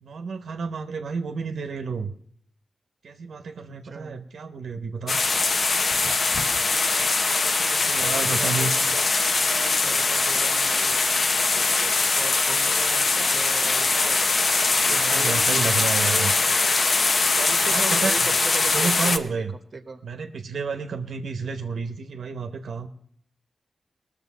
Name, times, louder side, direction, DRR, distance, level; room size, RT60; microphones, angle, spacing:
voice 1, 0.0-2.1 3.0-5.2 7.4-8.7 14.9-16.6 17.6-18.3 18.7-19.5 20.0-22.9, right 5 dB, 85° right, 7 dB, 0.8 m, -31 dB
voice 2, 3.8-4.2 7.9-9.1 9.4-14.2 14.8-16.3 17.3-19.4 19.7-20.0, right 4 dB, 45° right, 10 dB, 1.0 m, -38 dB
sound 1, 5.1-19.2, left 3 dB, 50° left, 0.8 m, -22 dB
19.0 x 6.8 x 5.5 m, 0.67 s
wide cardioid pair, 105°, 0 cm